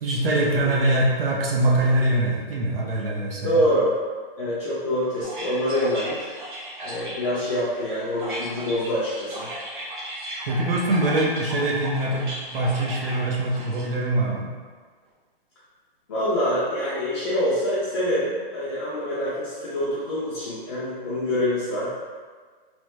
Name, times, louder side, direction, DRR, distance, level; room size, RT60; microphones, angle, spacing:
voice 1, 0.0-3.6 10.5-14.5, right 1 dB, 75° right, -3 dB, 0.7 m, -23 dB
voice 2, 3.4-4.0 4.4-6.3 6.8-9.5 16.1-21.9, equal, 30° left, -10 dB, 0.5 m, -25 dB
sound 1, 5.2-13.8, equal, 55° right, 1.0 m, -36 dB
3.2 x 2.1 x 3.0 m, 1.5 s
hypercardioid pair, 160°, 29 cm